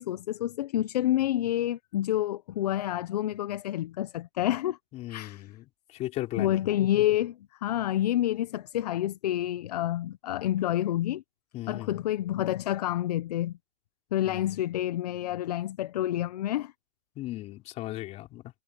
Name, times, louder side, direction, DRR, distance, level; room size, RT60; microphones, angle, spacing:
voice 1, 0.0-4.8 5.1-5.5 6.4-11.2 11.7-13.5 14.1-16.7, left 13 dB, 40° left, 0.7 m, -28 dB
voice 2, 4.9-5.7 5.9-6.6 11.5-12.0 14.3-14.6 17.2-18.4, left 16 dB, 20° left, 4.7 m, -37 dB
hypercardioid pair, 160°, 30 cm